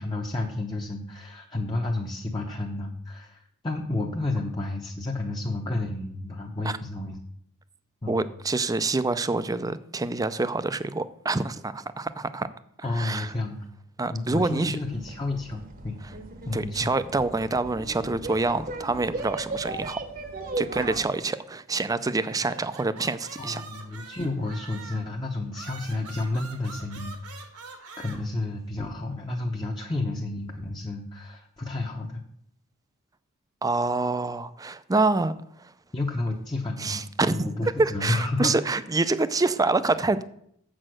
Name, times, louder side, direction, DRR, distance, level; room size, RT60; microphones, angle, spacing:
voice 1, 0.0-7.2 8.0-8.2 12.8-13.7 14.1-16.0 16.4-16.9 20.7-21.0 23.4-27.2 28.0-32.2 35.9-38.5, left 2 dB, 20° left, 0 dB, 0.8 m, -31 dB
voice 2, 8.1-12.5 12.8-13.3 14.0-14.8 16.5-20.0 20.6-23.6 33.6-35.3 36.8-40.2, right 3 dB, 15° right, 13 dB, 0.4 m, -26 dB
sound 1, 14.8-21.0, right 2 dB, 40° right, 0.9 m, -36 dB
sound 2, 22.3-25.1 25.5-28.2, right 4 dB, 85° right, 1.7 m, -44 dB
7.6 x 6.2 x 6.3 m, 0.69 s
head